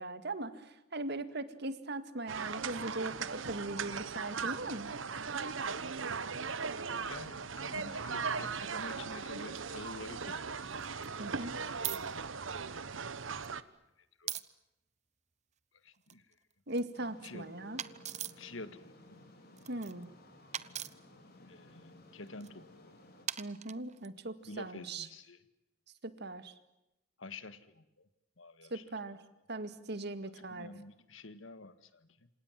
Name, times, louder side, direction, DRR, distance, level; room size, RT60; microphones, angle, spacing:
voice 1, 0.0-5.0 11.2-11.5 16.7-17.8 19.7-20.1 23.4-25.1 26.0-26.5 28.7-29.2 29.5-30.7, right 2 dB, 60° right, 11 dB, 2.0 m, -39 dB
sound 1, 2.3-13.6, right 5 dB, 75° right, 1.1 m, -38 dB
voice 2, 7.0-10.7 11.0-11.7 12.3-12.5 13.1-13.4 14.0-14.4 15.8-16.3 17.2-17.5 18.4-19.2 21.4-22.9 24.4-25.4 27.2-28.1 28.4-28.8 30.2-32.3, left 2 dB, 80° left, 12 dB, 1.7 m, -49 dB
sound 2, 9.5-9.6 10.7-11.1 11.8-12.0 13.2-13.5 14.3-14.5 15.9-16.8 17.8-18.4 19.6-20.0 20.5-20.9 22.3-22.5 23.3-24.1, right 10 dB, 35° right, 0.9 m, -40 dB
sound 3, 16.9-23.3, left 1 dB, 55° left, 4.6 m, -57 dB
28.0 x 27.0 x 7.5 m, 0.91 s
head